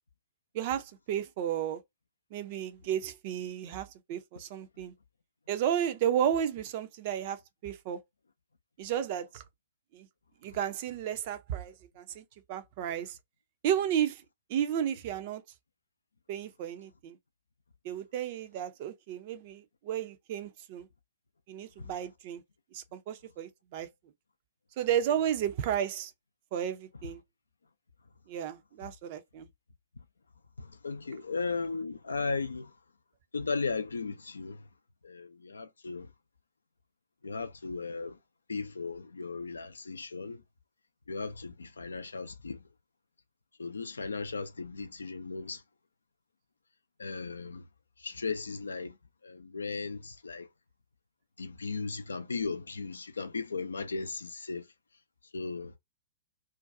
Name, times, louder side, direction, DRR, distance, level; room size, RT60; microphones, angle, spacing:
voice 1, 0.5-1.8 2.3-4.9 5.5-8.0 8.8-9.4 9.9-10.1 10.4-13.2 13.6-14.2 14.5-15.4 16.3-17.2 17.8-20.9 21.5-22.4 22.7-23.9 24.8-26.1 26.5-27.2 28.3-29.5, right 10 dB, 40° right, 0.5 m, -33 dB
voice 2, 30.6-32.8 33.3-34.7 35.0-36.1 37.2-38.2 38.5-40.4 41.1-42.6 43.6-45.6 47.0-47.7 48.0-49.0 49.2-50.5 51.4-54.7 55.3-55.8, left 4 dB, 75° left, 0.4 m, -36 dB
2.5 x 2.2 x 2.4 m
figure-of-eight pair, 110°, 0 cm